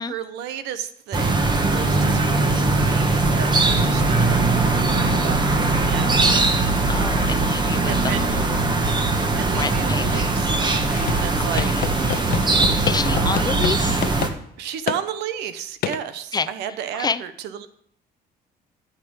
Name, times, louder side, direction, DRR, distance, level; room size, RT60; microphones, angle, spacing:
voice 1, 0.0-4.6 4.9-5.5 5.8-6.2 7.9-8.3 9.3-11.7 13.1-13.6 14.6-17.7, right 9 dB, 85° right, 11 dB, 1.1 m, -33 dB
sound 1, 1.1-14.3, right 3 dB, 25° right, 1.6 m, -20 dB
voice 2, 6.9-8.6 9.5-10.3 11.4-11.9 12.9-14.0 16.3-16.5 16.9-17.2, left 5 dB, 25° left, 12 dB, 0.6 m, -28 dB
sound 2, 10.9-13.8 14.0-14.3 14.9-15.0 15.8-16.0, left 11 dB, 65° left, 0.8 m, -28 dB
13.0 x 5.1 x 8.7 m, 0.68 s
cardioid pair, 110°, 17 cm